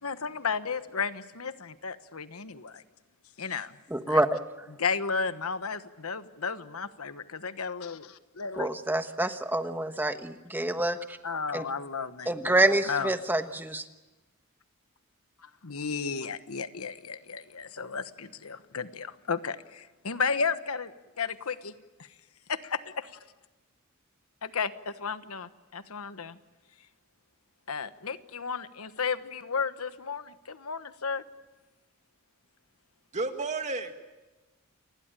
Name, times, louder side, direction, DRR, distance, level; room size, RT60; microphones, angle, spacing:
voice 1, 0.0-2.8 3.4-3.8 4.1-4.2 4.8-8.7 11.2-12.3 12.8-13.1 15.4-21.7 22.0-22.1 22.5-23.2 24.4-26.4 27.7-31.2, left 5 dB, 90° left, 11 dB, 1.2 m, -33 dB
voice 2, 3.9-4.4 8.6-11.2 11.5-11.6 12.3-13.8, right 1 dB, 10° right, 8 dB, 1.2 m, -27 dB
voice 3, 33.1-33.9, right 3 dB, 35° right, 6 dB, 2.1 m, -31 dB
29.0 x 20.5 x 9.0 m, 1.1 s
head